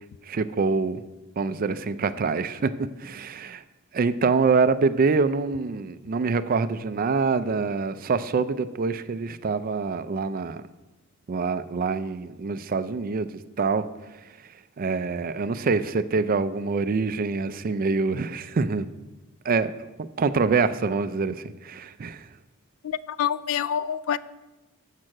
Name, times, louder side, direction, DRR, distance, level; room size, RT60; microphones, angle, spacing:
voice 1, 0.2-1.0 1.4-2.7 3.0-3.6 3.9-10.6 11.3-13.8 14.1-18.9 19.4-22.3, right 4 dB, 45° right, 13 dB, 0.4 m, -25 dB
voice 2, 22.8-24.2, left 8 dB, 70° left, 17 dB, 0.3 m, -27 dB
7.4 x 6.1 x 6.4 m, 1.1 s
head